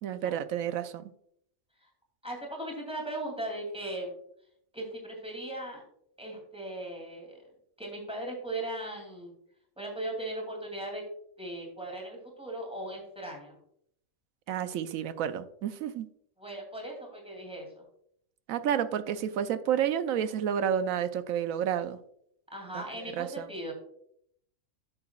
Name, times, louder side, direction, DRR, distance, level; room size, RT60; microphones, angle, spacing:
voice 1, 0.0-1.1 14.5-16.1 18.5-22.0 23.1-23.5, right 9 dB, 80° right, 12 dB, 1.0 m, -30 dB
voice 2, 2.2-4.1 4.7-5.8 6.2-7.4 7.8-9.3 9.8-11.0 11.4-13.6 16.4-17.8 22.5-23.7, right 1 dB, 5° right, -1 dB, 2.7 m, -38 dB
11.0 x 6.8 x 2.3 m, 0.70 s
omnidirectional pair, 1.4 m